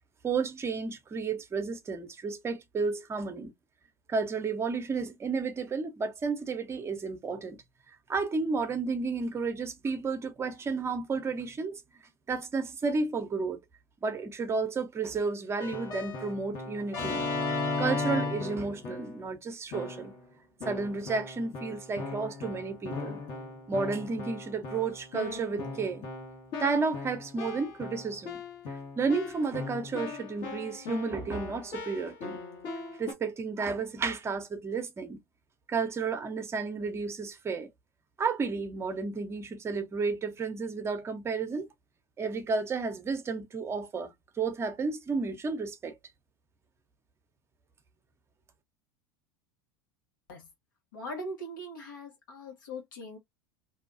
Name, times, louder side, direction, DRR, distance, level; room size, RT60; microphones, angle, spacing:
voice 1, 0.2-3.5 4.1-7.6 7.9-11.8 12.3-13.6 14.0-17.3 17.8-20.1 20.7-23.2 23.7-26.1 26.6-28.4 28.7-32.4 33.0-35.2 35.7-37.7 38.2-41.7 42.2-45.9, right 4 dB, 25° right, 0.7 m, -32 dB
Keyboard (musical), 15.6-19.3 19.7-20.2 20.6-33.1, left 3 dB, 60° left, 1.3 m, -37 dB
voice 2, 50.9-53.2, equal, 80° left, 1.3 m, -40 dB
2.7 x 2.3 x 2.3 m
hypercardioid pair, 90°, 10 cm